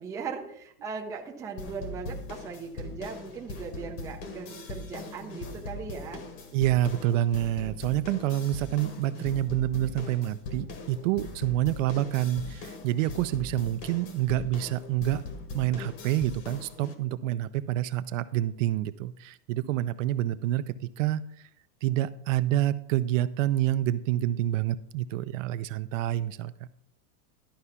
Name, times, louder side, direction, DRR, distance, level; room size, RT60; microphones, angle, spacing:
voice 1, 0.0-6.2, right 5 dB, 5° right, 0 dB, 0.5 m, -38 dB
sound 1, 1.6-16.9, left 3 dB, 45° left, 1.5 m, -40 dB
voice 2, 6.5-15.2 15.5-21.2 21.8-26.7, right 13 dB, 55° right, 12 dB, 0.6 m, -28 dB
11.5 x 4.8 x 5.6 m, 0.71 s
supercardioid pair, 160°, 46 cm